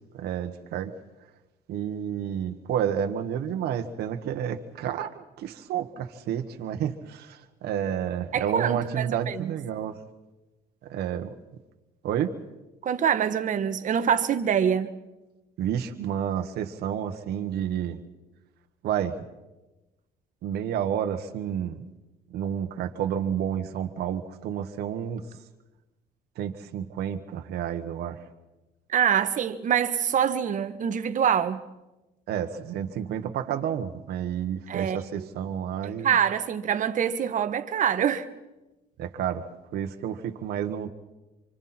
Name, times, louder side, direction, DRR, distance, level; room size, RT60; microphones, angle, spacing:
voice 1, 0.1-0.9 1.7-10.0 10.9-11.3 12.0-12.3 15.6-18.0 18.8-19.2 20.4-21.9 22.3-25.3 26.3-28.2 32.3-36.2 39.0-39.5 39.7-40.9, right 9 dB, 70° right, 1.5 m, -30 dB
voice 2, 8.3-9.5 12.8-14.9 28.9-31.6 34.7-35.0 35.8-38.3, right 8 dB, 50° right, 1.4 m, -25 dB
27.0 x 25.0 x 4.4 m
cardioid pair, 110°, 17 cm